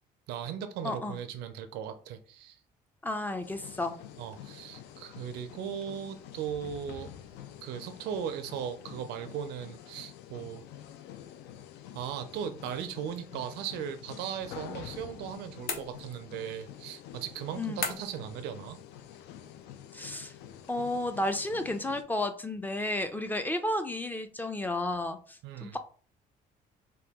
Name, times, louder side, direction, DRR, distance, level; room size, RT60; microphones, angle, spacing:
voice 1, 0.3-2.6 4.2-7.1 7.6-10.6 11.9-18.8 25.4-25.8, right 8 dB, 85° right, 9 dB, 0.4 m, -38 dB
voice 2, 0.8-1.2 3.0-4.0 17.6-18.0 19.9-20.3 20.7-25.8, left 1 dB, 10° left, 8 dB, 0.3 m, -32 dB
sound 1, 3.4-22.0, left 10 dB, 85° left, 0.4 m, -48 dB
sound 2, 15.7-16.4 17.8-18.3, left 4 dB, 65° left, 0.8 m, -36 dB
2.8 x 2.2 x 3.4 m, 0.41 s
cardioid pair, 110°, 17 cm